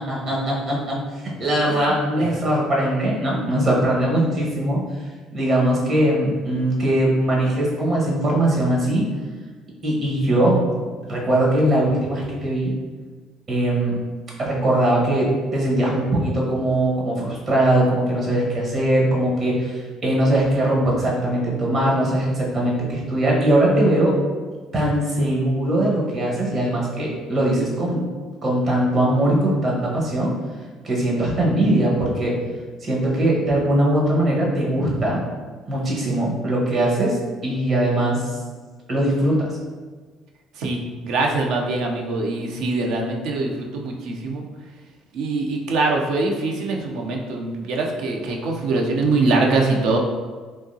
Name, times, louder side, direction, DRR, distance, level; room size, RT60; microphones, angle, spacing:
voice 1, 0.0-4.8 5.3-9.0 9.8-10.6 11.1-12.7 13.5-13.9 14.4-24.1 24.7-28.0 28.4-30.3 30.8-32.4 32.8-35.2 35.7-37.2 37.4-38.3 38.9-39.5, right 1 dB, 50° right, -4 dB, 1.3 m, -21 dB
voice 2, 1.7-2.3 40.6-40.8 41.0-44.4 45.1-50.0, right 3 dB, 70° right, 1 dB, 0.5 m, -23 dB
3.5 x 2.9 x 2.7 m, 1.4 s
hypercardioid pair, 60°, 0 cm